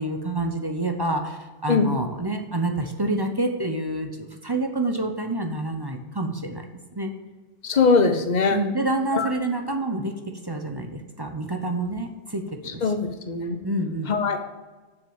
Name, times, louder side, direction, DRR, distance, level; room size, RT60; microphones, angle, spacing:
voice 1, 0.0-6.6 6.9-7.1 8.5-13.0 13.6-14.1, right 2 dB, 25° right, 4 dB, 0.7 m, -28 dB
voice 2, 7.6-8.6 9.1-9.3 12.8-13.6 14.1-14.4, left 4 dB, 40° left, 7 dB, 0.9 m, -21 dB
7.3 x 6.2 x 7.2 m, 1.3 s
omnidirectional pair, 1.3 m